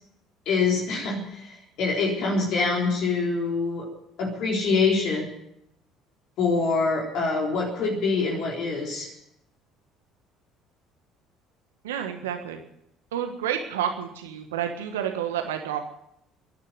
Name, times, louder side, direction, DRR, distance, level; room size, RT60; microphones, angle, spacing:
voice 1, 0.5-3.9 4.2-5.3 6.4-9.1, left 4 dB, 60° left, -1 dB, 3.9 m, -25 dB
voice 2, 11.8-12.6 13.1-15.8, right 9 dB, 75° right, 6 dB, 1.4 m, -29 dB
13.5 x 11.0 x 9.2 m, 0.79 s
figure-of-eight pair, 55°, 0 cm